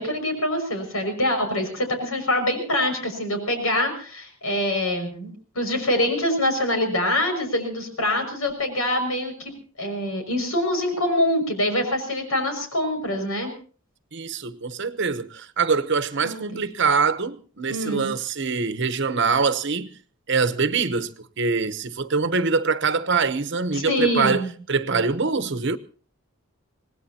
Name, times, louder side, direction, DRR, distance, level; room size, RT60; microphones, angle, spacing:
voice 1, 0.0-9.5 9.8-13.5 16.2-16.6 17.7-18.1 23.7-24.5, left 1 dB, 85° left, 6.3 m, -25 dB
voice 2, 14.1-19.9 20.3-25.8, right 4 dB, 55° right, 1.0 m, -24 dB
26.5 x 19.0 x 2.9 m
head